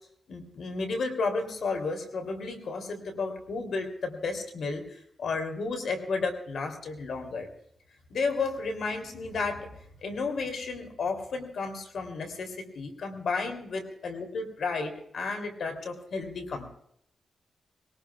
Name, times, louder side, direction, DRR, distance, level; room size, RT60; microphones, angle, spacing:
voice 1, 0.3-7.5 8.1-9.7 10.0-16.7, left 4 dB, 70° left, 5 dB, 3.2 m, -32 dB
21.5 x 18.5 x 2.4 m, 0.71 s
cardioid pair, 100°, 0 cm